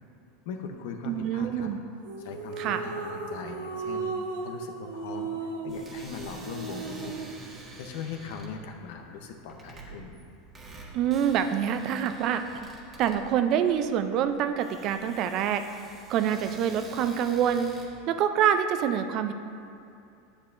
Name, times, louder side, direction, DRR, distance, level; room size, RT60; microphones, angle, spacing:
voice 1, 0.4-1.7 2.2-4.1 4.4-7.2 7.8-10.2, left 5 dB, 70° left, 4 dB, 0.8 m, -40 dB
voice 2, 1.1-1.8 2.6-2.8 10.9-12.7 13.0-15.6 16.1-17.7 18.1-19.3, right 9 dB, 50° right, 9 dB, 0.4 m, -26 dB
sound 1, 2.0-7.4, right 4 dB, 80° right, 0.8 m, -36 dB
sound 2, 5.7-17.9, right 3 dB, 25° right, 1.4 m, -48 dB
8.2 x 8.1 x 2.6 m, 2.5 s
supercardioid pair, 115°, 0 cm